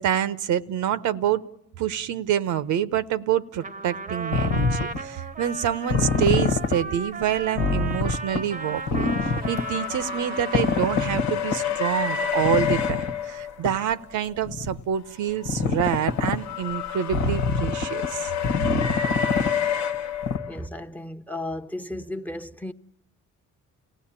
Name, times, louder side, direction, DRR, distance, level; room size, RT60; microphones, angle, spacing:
voice 1, 0.0-1.4 1.8-18.3 18.6-18.7, right 10 dB, 80° right, 0.9 m, -27 dB
Trumpet, 3.6-11.5, right 3 dB, 25° right, 0.8 m, -36 dB
sound 1, 4.3-5.0 5.9-6.8 7.2-7.3 7.5-8.4 8.9-9.6 10.5-11.6 12.4-13.1 13.6-13.7 14.4-14.8 15.5-16.4 17.1-18.1 18.4-19.5 19.9-20.0 20.2-20.4, left 4 dB, 85° left, 1.5 m, -25 dB
sound 2, 8.3-14.0 15.3-20.7, left 8 dB, 70° left, 1.0 m, -30 dB
voice 2, 20.5-22.7, left 1 dB, 5° left, 0.9 m, -34 dB
29.5 x 17.5 x 8.8 m
cardioid pair, 90°, 30 cm